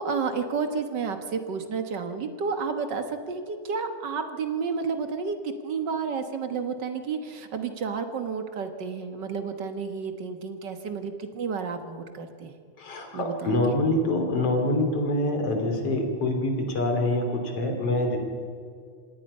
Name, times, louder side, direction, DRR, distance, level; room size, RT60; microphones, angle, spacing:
voice 1, 0.0-12.5 13.1-13.8, right 5 dB, 50° right, 8 dB, 1.4 m, -31 dB
voice 2, 12.8-18.2, left 1 dB, 50° left, 4 dB, 3.7 m, -25 dB
26.0 x 18.5 x 5.5 m, 2.3 s
omnidirectional pair, 3.5 m